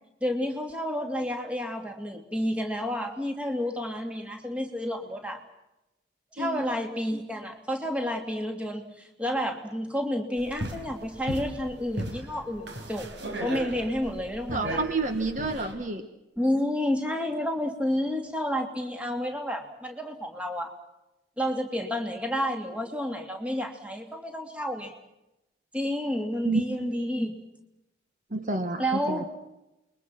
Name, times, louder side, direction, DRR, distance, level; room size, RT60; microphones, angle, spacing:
voice 1, 0.2-5.4 6.3-13.1 13.4-14.8 16.4-20.7 21.4-24.9 25.7-27.3 28.8-29.3, equal, 5° right, 4 dB, 3.0 m, -30 dB
voice 2, 6.4-6.7 14.5-16.0 26.4-26.9 28.3-29.2, right 2 dB, 40° right, 7 dB, 1.7 m, -29 dB
sound 1, 10.4-15.7, right 1 dB, 75° right, 4.5 m, -36 dB
29.0 x 23.0 x 6.1 m, 0.92 s
head